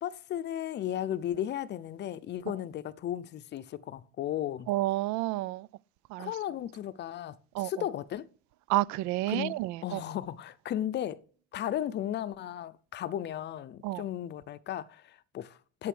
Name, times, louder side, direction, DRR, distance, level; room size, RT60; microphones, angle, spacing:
voice 1, 0.0-4.7 6.2-8.3 9.3-9.6 9.8-11.2 11.5-15.9, left 11 dB, 40° left, 0.6 m, -35 dB
voice 2, 4.7-5.7 6.1-6.3 7.5-7.7 8.7-10.0 13.8-14.0, right 17 dB, 80° right, 0.6 m, -30 dB
8.3 x 8.2 x 6.0 m
cardioid pair, 175°, 29 cm